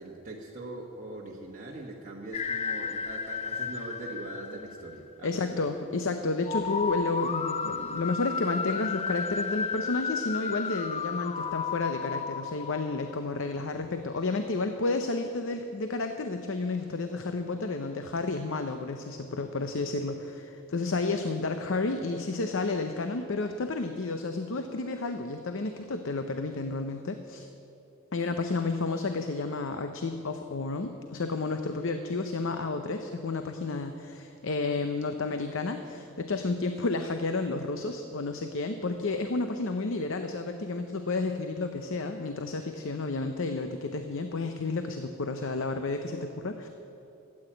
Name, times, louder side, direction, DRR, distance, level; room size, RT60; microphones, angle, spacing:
voice 1, 0.0-5.6, right 2 dB, 35° right, -3 dB, 1.2 m, -41 dB
sound 1, 2.3-5.1 6.5-13.5, left 5 dB, 30° left, 0.4 m, -33 dB
voice 2, 5.2-27.5 28.1-46.7, left 3 dB, 65° left, 7 dB, 0.7 m, -31 dB
13.0 x 8.8 x 8.8 m, 2.8 s
head